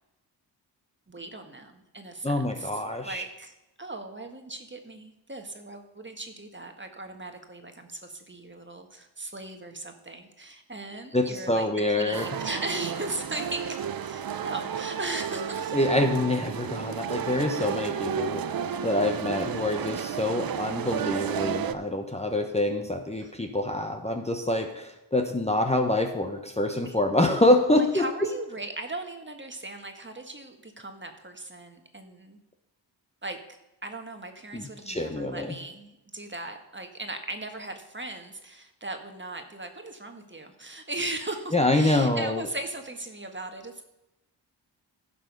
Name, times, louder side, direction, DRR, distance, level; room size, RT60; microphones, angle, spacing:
voice 1, 1.1-3.5 3.8-15.7 23.2-23.3 26.8-27.0 27.9-32.4 33.2-33.4 33.8-43.8, right 2 dB, 25° right, 5 dB, 1.5 m, -38 dB
voice 2, 2.2-3.2 11.1-12.3 15.7-18.5 18.8-28.3 34.5-35.5 41.5-42.4, left 1 dB, 15° left, 3 dB, 1.1 m, -26 dB
sound 1, 12.1-21.7, right 8 dB, 50° right, 0.7 m, -32 dB
11.0 x 6.2 x 5.4 m, 0.94 s
supercardioid pair, 45°, 47 cm